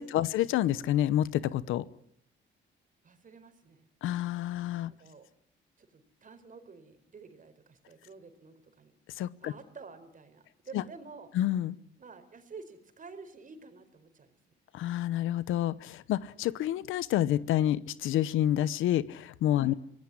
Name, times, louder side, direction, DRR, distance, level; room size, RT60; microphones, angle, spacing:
voice 1, 0.0-1.9 4.0-4.9 9.1-9.5 10.7-10.8 11.3-11.8 14.7-19.7, left 12 dB, 85° left, 17 dB, 1.0 m, -28 dB
voice 2, 3.0-3.9 4.9-5.3 5.8-8.9 9.4-11.3 12.0-14.3 19.6-19.8, right 4 dB, 40° right, 9 dB, 4.6 m, -50 dB
25.5 x 18.5 x 10.0 m, 0.69 s
cardioid pair, 90°, 20 cm